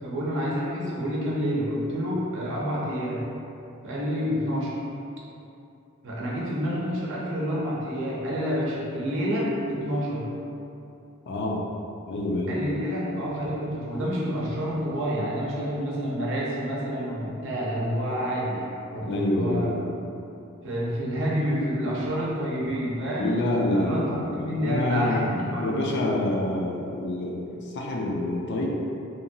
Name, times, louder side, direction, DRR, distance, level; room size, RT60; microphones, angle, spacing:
voice 1, 0.0-3.2 3.8-4.7 6.0-10.3 12.5-19.8 20.6-23.4 23.7-25.7, equal, 65° right, -5 dB, 0.6 m, -28 dB
voice 2, 11.3-11.6 12.1-12.6 19.1-19.8 23.2-24.3 24.6-25.3 25.6-27.5 27.7-28.7, left 1 dB, 55° left, -1 dB, 0.4 m, -26 dB
2.8 x 2.2 x 2.7 m, 2.7 s
head